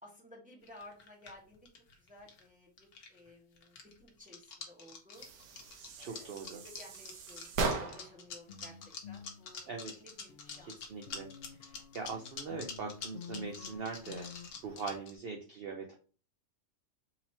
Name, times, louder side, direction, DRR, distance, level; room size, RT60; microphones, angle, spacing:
voice 1, 0.0-1.7 2.0-5.3 6.0-9.7 10.0-11.2, left 1 dB, 5° right, -3 dB, 1.2 m, -56 dB
sound 1, 0.6-2.5 2.8-3.3 3.6-15.1, left 5 dB, 90° left, 1.4 m, -46 dB
sound 2, 5.1-8.2, right 4 dB, 85° right, 1.2 m, -38 dB
voice 2, 6.0-6.6 9.7-10.0 10.6-11.3 11.6-14.3 14.6-15.9, right 4 dB, 55° right, 2 dB, 0.7 m, -41 dB
sound 3, 8.4-10.7 11.0-15.0, left 6 dB, 65° left, 0.6 m, -51 dB
4.0 x 2.9 x 4.1 m, 0.38 s
omnidirectional pair, 1.5 m